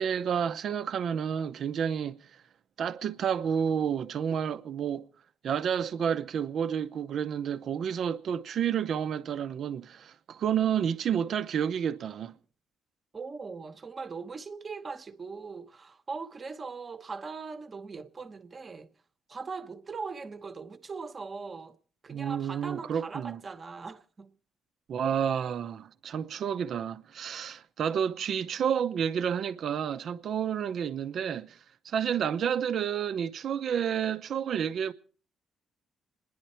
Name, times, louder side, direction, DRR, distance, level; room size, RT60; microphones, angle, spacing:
voice 1, 0.0-2.2 2.8-5.0 5.4-12.4 22.1-23.4 24.9-31.6 31.8-34.9, right 8 dB, 65° right, 0.8 m, -30 dB
voice 2, 13.1-18.9 19.3-21.8 22.0-24.4, right 4 dB, 35° right, 1.1 m, -40 dB
27.5 x 10.5 x 4.4 m
cardioid pair, 85°, 0 cm